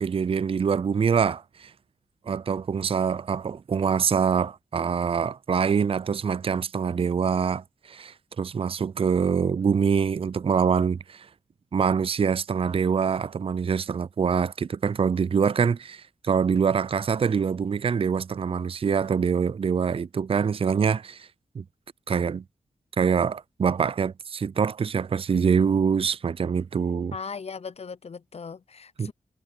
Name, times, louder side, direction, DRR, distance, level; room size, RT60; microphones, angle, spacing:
voice 1, 0.0-1.7 2.3-11.3 11.7-21.3 21.6-21.7 22.1-22.4 23.0-27.1 29.0-29.1, right 6 dB, 40° right, 0.4 m, -25 dB
voice 2, 27.1-29.1, left 5 dB, 50° left, 0.7 m, -38 dB
supercardioid pair, 40°, 14 cm